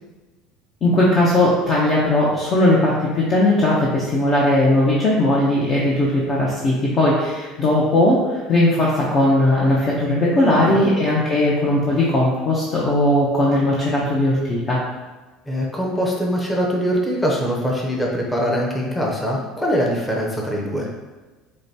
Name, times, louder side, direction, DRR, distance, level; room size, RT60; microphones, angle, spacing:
voice 1, 0.8-14.8, left 1 dB, 40° left, -5 dB, 0.7 m, -18 dB
voice 2, 10.5-10.9 15.5-20.9, equal, 10° left, -2 dB, 0.7 m, -23 dB
4.8 x 2.2 x 2.8 m, 1.2 s
supercardioid pair, 105°, 0 cm